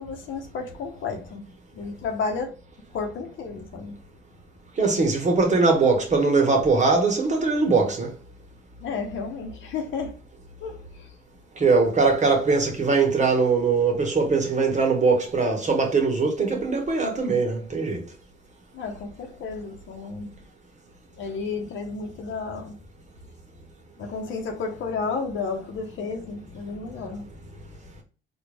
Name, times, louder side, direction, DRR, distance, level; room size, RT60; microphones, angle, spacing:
voice 1, 0.0-1.5 1.7-2.5 2.9-4.0 8.8-10.2 10.6-11.1 18.7-20.3 21.2-22.8 24.0-27.7, left 4 dB, 75° left, 1.0 m, -32 dB
voice 2, 4.8-8.1 11.6-18.0, right 4 dB, 35° right, 1.4 m, -21 dB
4.2 x 2.6 x 3.5 m
cardioid pair, 90°, 20 cm